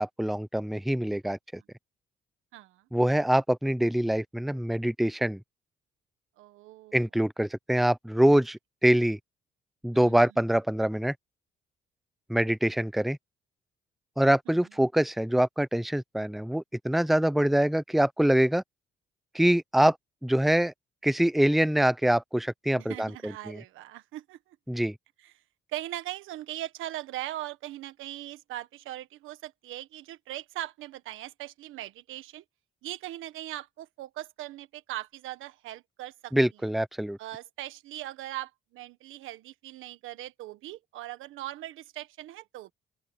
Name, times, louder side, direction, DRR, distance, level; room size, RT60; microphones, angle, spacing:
voice 1, 0.0-1.6 2.9-5.4 6.9-9.2 9.8-11.1 12.3-13.2 14.2-18.6 19.3-20.0 20.2-20.7 21.0-23.6 24.7-24.9 36.3-37.2, right 1 dB, ahead, 0.8 m, -24 dB
voice 2, 2.5-2.9 6.4-7.0 9.9-10.3 14.5-14.7 22.8-24.6 25.2-25.3 25.7-32.4 32.8-36.3 37.2-42.7, right 14 dB, 90° right, 1.5 m, -40 dB
open air
cardioid pair, 90°, 20 cm